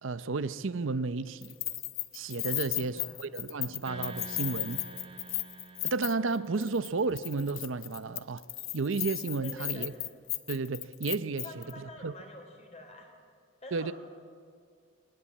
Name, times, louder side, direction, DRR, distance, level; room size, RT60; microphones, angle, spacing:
voice 1, 0.0-1.5 2.1-4.8 5.8-8.4 8.7-9.9 10.5-12.1 13.7-13.9, right 3 dB, 75° right, 0.7 m, -32 dB
Keys jangling, 1.4-6.4 6.6-6.9 7.2-11.7, left 17 dB, 85° left, 0.9 m, -35 dB
voice 2, 2.5-3.2 9.4-9.9 11.4-13.1 13.6-13.9, left 1 dB, 35° left, 3.8 m, -47 dB
sound 1, 3.8-7.3, right 3 dB, 30° right, 2.1 m, -47 dB
22.5 x 18.5 x 8.5 m
head